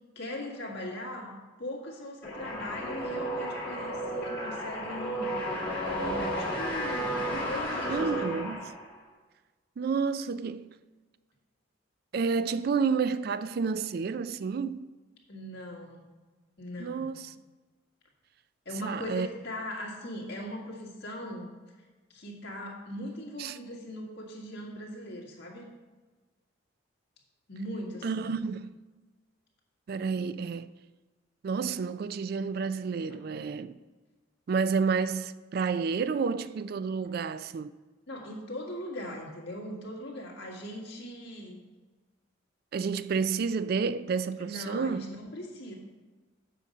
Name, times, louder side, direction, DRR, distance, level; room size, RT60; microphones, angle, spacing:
voice 1, 0.1-1.3 1.6-5.3 5.8-8.4 15.3-16.1 16.6-17.1 18.6-21.5 22.1-25.6 27.5-28.3 33.1-33.2 38.1-41.6 44.4-45.8, left 1 dB, 55° left, 1.8 m, -40 dB
sound 1, 2.2-9.0, equal, 10° left, 2.3 m, -33 dB
voice 2, 7.9-8.7 9.8-10.7 12.1-14.9 16.8-17.3 18.8-19.3 23.4-23.6 28.0-28.8 29.9-30.7 31.4-33.7 34.5-37.8 42.7-45.0, right 5 dB, 50° right, 0.3 m, -30 dB
7.4 x 5.2 x 6.6 m
head